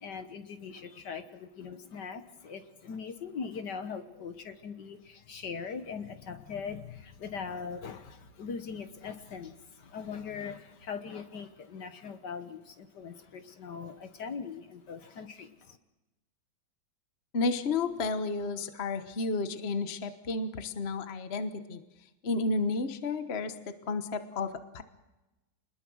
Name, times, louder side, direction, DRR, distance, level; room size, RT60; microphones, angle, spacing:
voice 1, 0.0-15.8, left 6 dB, 55° left, 9 dB, 1.6 m, -41 dB
voice 2, 17.3-21.8 22.2-24.8, left 3 dB, 35° left, 9 dB, 1.2 m, -32 dB
26.5 x 21.0 x 6.4 m, 1.0 s
omnidirectional pair, 2.4 m